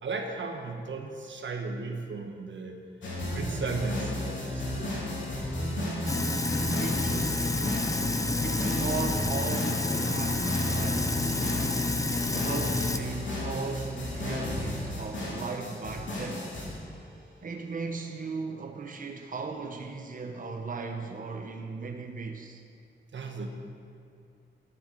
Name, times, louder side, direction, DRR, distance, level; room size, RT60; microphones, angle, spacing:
voice 1, 0.0-2.8 3.3-4.9 5.6-5.8 12.0-12.1 23.1-23.5, right 3 dB, 75° right, 1.3 m, -35 dB
sound 1, 3.0-17.0, left 1 dB, 80° left, 3.3 m, -33 dB
Sink (filling or washing), 6.1-13.0, left 2 dB, 15° left, 0.6 m, -29 dB
voice 2, 6.4-7.5 8.4-11.3 12.1-16.5 17.4-22.6, right 4 dB, 45° right, 0.9 m, -37 dB
11.5 x 9.6 x 5.2 m
wide cardioid pair, 120°, 19 cm